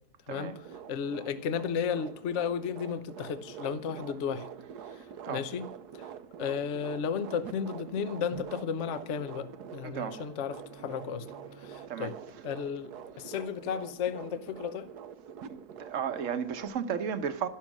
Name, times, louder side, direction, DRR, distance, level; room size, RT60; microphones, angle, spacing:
voice 1, 0.3-0.6 4.9-5.5 9.8-10.2 11.9-12.2 15.5-17.5, right 7 dB, 55° right, 1.3 m, -34 dB
sound 1, 0.5-16.7, right 8 dB, 75° right, 1.3 m, -46 dB
voice 2, 0.9-4.5 5.3-5.7 6.0-6.1 6.4-11.3 11.6-12.1 12.4-12.9 13.2-14.9, left 7 dB, 50° left, 1.1 m, -33 dB
sound 2, 8.8-12.3, right 5 dB, 35° right, 1.3 m, -56 dB
12.0 x 12.0 x 6.1 m
omnidirectional pair, 1.7 m